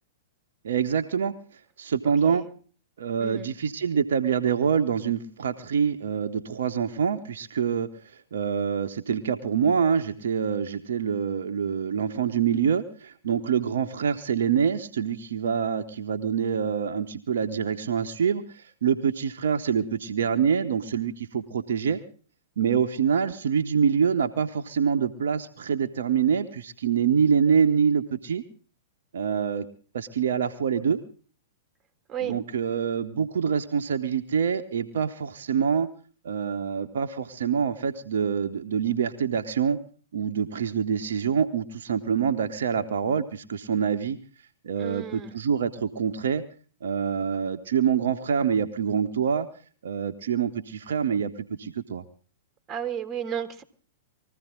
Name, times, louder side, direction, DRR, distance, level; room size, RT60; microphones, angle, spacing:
voice 1, 0.6-1.3 1.8-2.4 3.0-22.0 22.6-28.4 29.1-29.7 29.9-31.0 32.2-35.9 36.2-39.8 40.1-44.2 44.6-46.4 46.8-49.5 49.8-52.0, right 7 dB, 60° right, 6 dB, 1.0 m, -25 dB
voice 2, 44.8-45.4 52.7-53.6, right 8 dB, 20° right, 9 dB, 1.9 m, -33 dB
21.0 x 15.0 x 3.8 m, 0.41 s
figure-of-eight pair, 105°, 0 cm